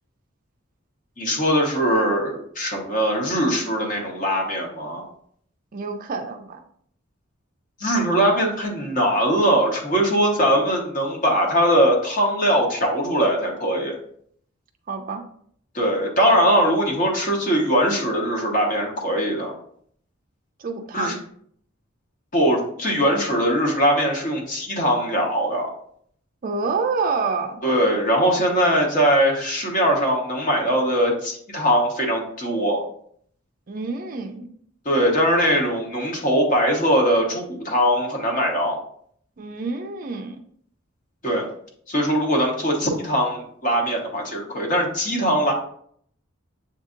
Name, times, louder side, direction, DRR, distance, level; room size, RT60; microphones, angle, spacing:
voice 1, 1.2-5.0 7.8-13.9 15.7-19.5 20.9-21.2 22.3-25.7 27.6-32.8 34.8-38.8 41.2-41.5 41.9-45.5, equal, 40° left, 0 dB, 1.1 m, -21 dB
voice 2, 5.7-6.6 14.9-15.2 20.6-21.2 26.4-27.6 33.7-34.5 39.4-40.4, right 4 dB, 40° right, 5 dB, 0.4 m, -27 dB
7.2 x 2.7 x 2.5 m, 0.64 s
head